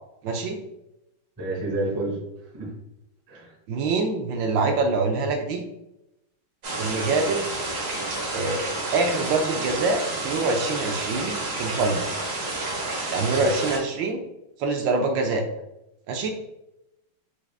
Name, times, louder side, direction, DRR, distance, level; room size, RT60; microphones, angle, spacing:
voice 1, 0.2-0.6 3.7-5.6 6.8-7.4 8.3-8.6 8.9-12.0 13.1-14.2 14.6-15.4 16.1-16.3, right 3 dB, 75° right, 3 dB, 1.2 m, -25 dB
voice 2, 1.4-2.2 2.5-2.7 3.3-3.5 13.4-13.5, right 2 dB, 20° right, -3 dB, 0.5 m, -29 dB
sound 1, 6.6-13.8, right 2 dB, 45° right, 1.3 m, -30 dB
4.8 x 3.2 x 2.3 m, 0.88 s
omnidirectional pair, 2.2 m